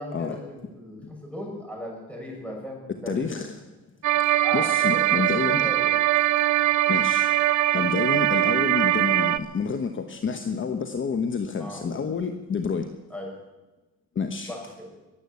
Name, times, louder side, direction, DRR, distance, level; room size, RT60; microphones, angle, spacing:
voice 1, 0.0-3.5 4.4-5.9 11.6-11.8 13.1-13.3 14.5-14.9, equal, 5° left, -1 dB, 7.0 m, -37 dB
voice 2, 3.1-3.5 4.5-5.6 6.9-7.3 7.7-12.9 14.2-14.5, left 5 dB, 40° left, 7 dB, 1.2 m, -28 dB
sound 1, 4.0-9.4, right 13 dB, 70° right, 0.7 m, -22 dB
21.5 x 8.2 x 8.4 m, 1.1 s
cardioid pair, 90°, 30 cm